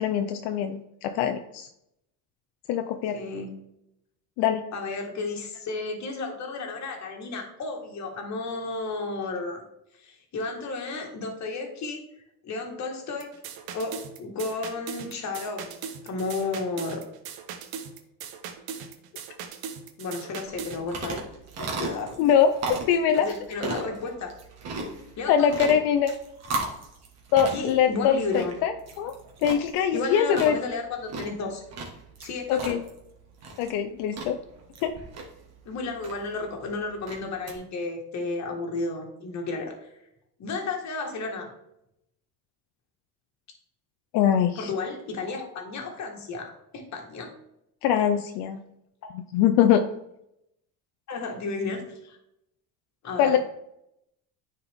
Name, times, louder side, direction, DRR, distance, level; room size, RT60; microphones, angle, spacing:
voice 1, 0.0-1.7 2.7-3.2 4.4-4.6 22.2-22.5 22.9-23.3 25.3-26.1 27.3-29.2 29.4-30.6 32.5-32.8 33.6-34.4 34.8-34.9 44.1-44.7 47.8-48.6 49.1-49.8 53.2-53.4, left 9 dB, 80° left, 7 dB, 0.6 m, -23 dB
voice 2, 3.1-3.6 4.7-9.6 10.0-12.0 12.4-13.3 13.7-15.7 16.0-17.0 20.0-21.2 21.6-22.2 23.1-24.3 25.2-25.7 27.5-28.5 29.9-31.6 32.2-32.8 35.6-39.9 40.4-41.5 44.5-47.3 51.1-52.2 53.0-53.4, left 3 dB, 45° left, 3 dB, 1.7 m, -33 dB
sound 1, 13.2-20.8, right 7 dB, 65° right, 1.0 m, -39 dB
sound 2, 20.5-37.6, right 3 dB, 40° right, 1.7 m, -37 dB
9.6 x 4.4 x 3.5 m, 0.81 s
cardioid pair, 135°, 39 cm